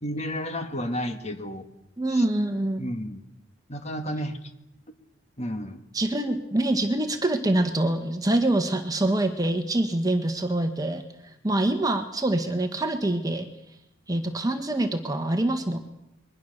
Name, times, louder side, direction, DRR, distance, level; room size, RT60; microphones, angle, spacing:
voice 1, 0.0-1.7 2.1-2.2 2.8-3.2 3.7-4.4 4.9-5.0 5.4-5.8, equal, 30° left, 7 dB, 1.9 m, -32 dB
voice 2, 2.0-2.8 5.9-11.0 11.4-13.5 14.1-15.8, right 1 dB, 20° right, 6 dB, 1.6 m, -25 dB
27.5 x 22.0 x 6.8 m, 0.84 s
head